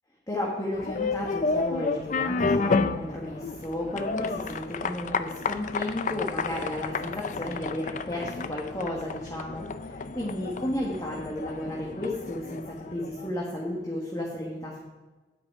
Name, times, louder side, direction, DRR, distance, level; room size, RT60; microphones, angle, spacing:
voice 1, 0.3-14.8, left 1 dB, 20° left, -3 dB, 1.3 m, -33 dB
sound 1, 0.7-13.5, left 4 dB, 45° left, 0.4 m, -31 dB
9.8 x 8.8 x 4.7 m, 1.2 s
head